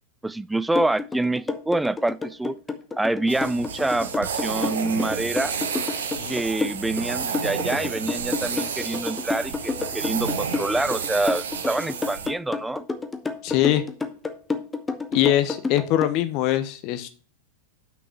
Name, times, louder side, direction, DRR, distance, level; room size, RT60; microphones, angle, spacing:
voice 1, 0.2-2.6 3.0-5.5 6.3-12.9, right 2 dB, 5° right, 0.3 m, -26 dB
sound 1, 0.7-16.1, left 4 dB, 10° left, 0.8 m, -30 dB
sound 2, 3.3-12.3, right 6 dB, 65° right, 1.0 m, -31 dB
voice 2, 13.4-13.8 15.1-17.1, left 13 dB, 40° left, 0.9 m, -22 dB
6.1 x 5.8 x 6.0 m
figure-of-eight pair, 90°, 0 cm